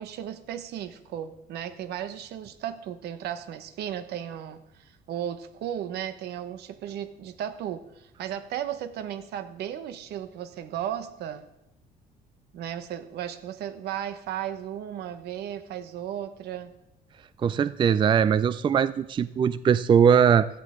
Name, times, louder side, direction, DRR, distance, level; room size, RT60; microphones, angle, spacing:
voice 1, 0.0-11.5 12.5-16.7, right 10 dB, 75° right, 11 dB, 1.1 m, -35 dB
voice 2, 17.4-20.5, right 7 dB, 30° right, 15 dB, 0.4 m, -20 dB
17.0 x 13.0 x 3.7 m, 0.85 s
cardioid pair, 110°, 17 cm